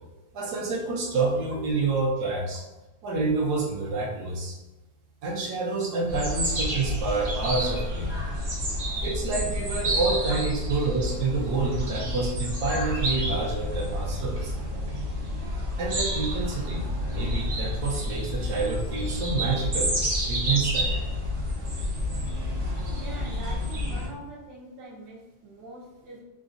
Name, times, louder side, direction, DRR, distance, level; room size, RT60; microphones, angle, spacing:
voice 1, 0.3-2.6 3.0-4.6 5.2-8.1 9.0-14.5 15.8-20.0 20.3-20.9, right 3 dB, 70° right, -1 dB, 1.2 m, -28 dB
sound 1, 6.1-24.1, equal, 55° right, 0.6 m, -29 dB
voice 2, 22.9-26.2, right 2 dB, 85° right, -4 dB, 1.5 m, -43 dB
3.9 x 2.4 x 2.5 m, 1.1 s
omnidirectional pair, 1.9 m